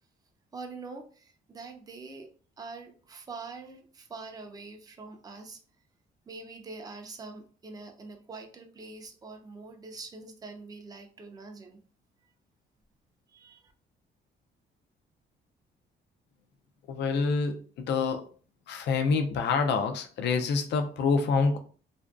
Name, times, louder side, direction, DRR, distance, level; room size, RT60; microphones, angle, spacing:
voice 1, 0.5-5.6 6.3-11.8 13.3-13.7, right 3 dB, 20° right, 4 dB, 0.4 m, -44 dB
voice 2, 16.9-18.3 18.7-21.6, left 4 dB, 60° left, 6 dB, 0.4 m, -27 dB
2.5 x 2.1 x 2.3 m, 0.40 s
cardioid pair, 90°, 20 cm